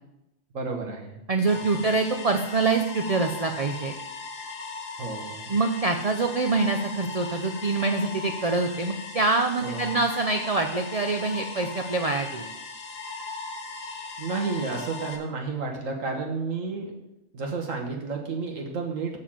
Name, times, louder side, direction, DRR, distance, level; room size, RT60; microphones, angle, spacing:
voice 1, 0.5-1.2 1.5-1.8 5.0-5.5 9.6-10.0 14.2-16.9 17.3-19.2, right 4 dB, 75° right, 0 dB, 1.6 m, -31 dB
voice 2, 1.3-3.9 5.5-12.5, right 3 dB, 50° right, 5 dB, 0.4 m, -25 dB
sound 1, 1.4-15.2, left 4 dB, 75° left, 1.4 m, -38 dB
6.6 x 5.7 x 7.3 m, 0.88 s
omnidirectional pair, 1.4 m